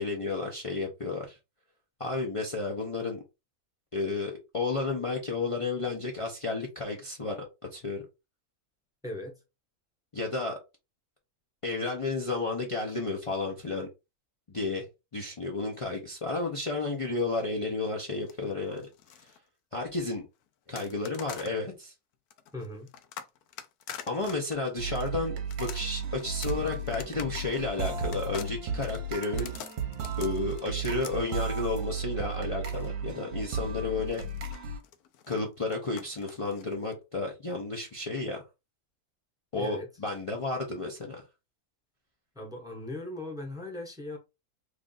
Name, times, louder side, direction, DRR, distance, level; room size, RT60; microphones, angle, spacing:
voice 1, 0.0-1.4 2.0-3.2 3.9-7.4 7.7-8.0 10.1-10.6 11.6-13.9 14.5-14.9 15.1-18.9 19.2-19.3 19.7-20.2 20.7-21.9 24.1-29.5 30.2-34.2 35.3-38.4 39.5-41.2, left 3 dB, 50° left, 0.3 m, -32 dB
voice 2, 9.0-9.4 22.5-22.9 39.6-39.9 42.3-44.2, left 1 dB, 5° right, 0.6 m, -38 dB
sound 1, 18.1-19.4 20.8-21.6 22.3-32.9 34.0-36.9, left 9 dB, 80° left, 1.1 m, -46 dB
sound 2, 24.8-34.8, right 4 dB, 65° right, 1.0 m, -34 dB
3.2 x 2.5 x 3.8 m
omnidirectional pair, 1.6 m